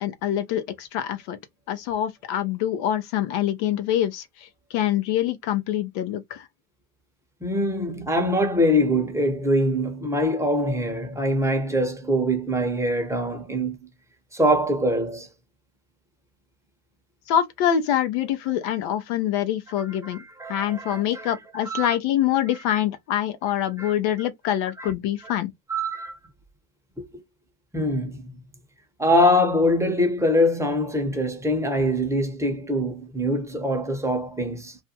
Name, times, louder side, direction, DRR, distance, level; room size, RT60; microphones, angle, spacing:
voice 1, 0.0-1.4 1.7-6.5 17.3-20.2 20.5-25.5, left 11 dB, 65° left, 0.8 m, -25 dB
voice 2, 7.4-13.8 14.3-15.3 19.8-21.3 21.6-22.0 22.7-22.8 23.8-23.9 24.8-24.9 25.2-25.3 25.7-26.2 27.0-27.2 27.7-28.3 29.0-34.8, equal, 5° right, 0.8 m, -24 dB
2.6 x 2.2 x 2.8 m
supercardioid pair, 100°, 49 cm